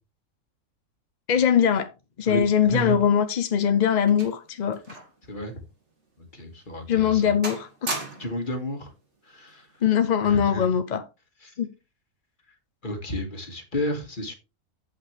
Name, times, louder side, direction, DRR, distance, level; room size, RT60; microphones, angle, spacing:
voice 1, 1.3-1.9 2.2-4.8 6.9-7.9 9.8-11.0 11.6-11.7, left 8 dB, 50° left, 0.5 m, -21 dB
voice 2, 2.3-3.0 5.3-5.6 6.2-7.3 8.2-8.9 9.3-9.7 10.2-10.7 11.4-11.5 12.8-14.3, equal, 35° left, 2.0 m, -32 dB
sound 1, 3.1-5.2 5.5-5.7 6.3-6.5 6.9-7.2 7.4-8.5 9.5-9.8, right 2 dB, 50° right, 2.8 m, -37 dB
9.0 x 8.1 x 3.3 m
omnidirectional pair, 1.6 m